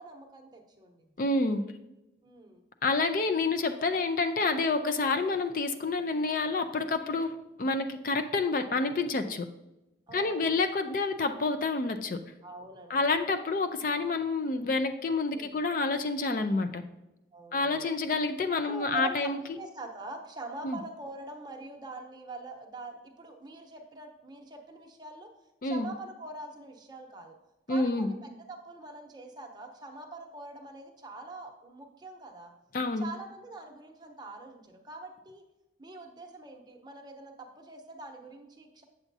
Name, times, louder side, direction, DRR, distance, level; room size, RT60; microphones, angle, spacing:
voice 1, 0.0-1.1 2.2-2.6 10.1-10.5 12.4-13.0 15.3-15.6 17.3-17.9 18.6-25.3 25.6-27.4 27.7-32.5 33.0-35.4 35.8-38.8, right 2 dB, 25° right, 2 dB, 0.8 m, -44 dB
voice 2, 1.2-1.6 2.8-9.5 10.1-12.2 12.9-16.8 17.5-19.4 20.6-20.8 25.6-25.9 27.7-28.1 32.7-33.1, left 3 dB, 45° left, 9 dB, 0.4 m, -28 dB
8.1 x 7.0 x 2.7 m, 0.95 s
head